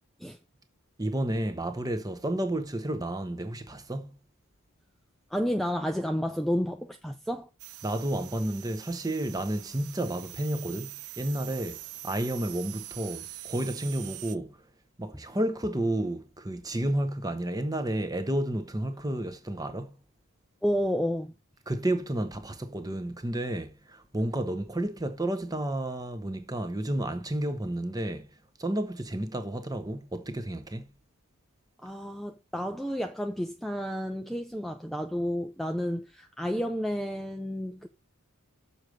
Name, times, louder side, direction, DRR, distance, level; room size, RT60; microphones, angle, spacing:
voice 1, 1.0-4.2 7.8-14.6 15.0-20.0 21.7-28.3 28.6-30.9, right 1 dB, 15° right, 0.9 m, -31 dB
voice 2, 5.3-7.5 20.6-21.3 31.8-37.9, equal, ahead, 0.5 m, -31 dB
sound 1, 7.6-14.4, right 14 dB, 80° right, 0.6 m, -44 dB
6.9 x 4.7 x 6.4 m
head